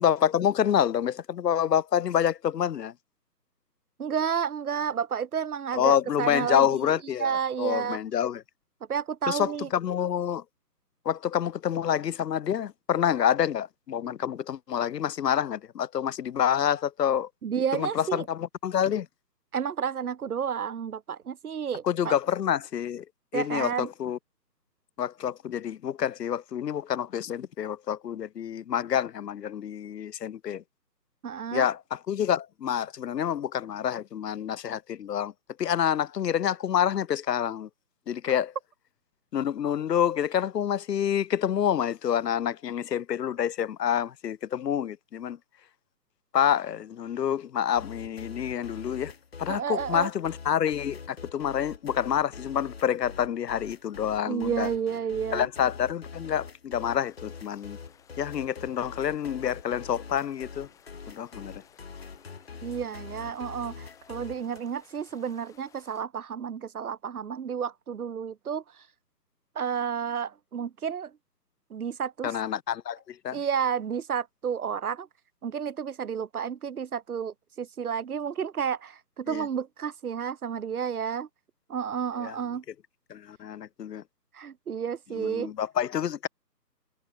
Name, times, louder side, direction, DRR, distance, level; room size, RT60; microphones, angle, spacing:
voice 1, 0.0-2.9 5.7-8.4 9.3-10.4 11.1-17.3 17.7-19.1 21.8-23.0 23.3-24.2 25.0-30.6 31.5-35.3 35.6-37.7 38.1-38.5 39.3-45.4 46.3-49.1 49.4-54.7 55.3-57.8 58.2-60.7 61.1-61.6 72.2-73.4 79.3-79.5 82.2-82.4 83.1-84.0 85.2-86.3, left 9 dB, 75° left, 0.5 m, -27 dB
voice 2, 4.0-6.7 7.2-8.0 8.9-9.7 17.4-18.3 19.5-22.2 23.3-23.9 31.2-31.7 49.5-50.1 54.3-55.5 62.6-68.6 69.6-71.1 71.7-72.4 73.3-75.1 75.4-81.3 81.7-82.6 84.3-85.5, right 7 dB, 60° right, 0.6 m, -31 dB
sound 1, 47.7-64.6, left 5 dB, 35° left, 1.3 m, -44 dB
sound 2, 56.8-66.0, left 9 dB, 5° left, 7.1 m, -59 dB
figure-of-eight pair, 160°, 50 cm